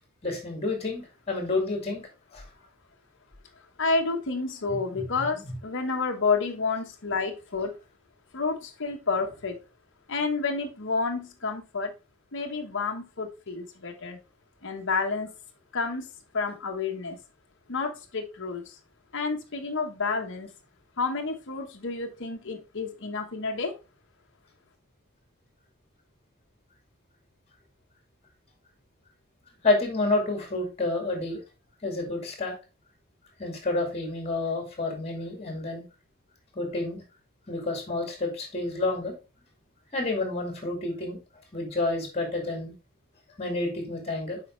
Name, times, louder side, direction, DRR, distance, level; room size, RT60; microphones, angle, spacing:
voice 1, 0.2-2.0 2.3-2.4 4.7-5.6 29.6-31.4 31.8-32.5 33.4-35.8 36.5-37.0 37.5-39.1 39.9-41.2 41.5-42.7 43.4-44.4, left 2 dB, 30° left, 3 dB, 2.3 m, -29 dB
voice 2, 3.8-7.7 8.3-9.6 10.1-11.9 12.3-14.2 14.6-15.3 15.7-16.0 16.3-17.2 17.7-18.6 19.1-20.5 21.0-23.7, left 4 dB, 60° left, 3 dB, 1.2 m, -29 dB
7.6 x 5.0 x 3.1 m, 0.29 s
head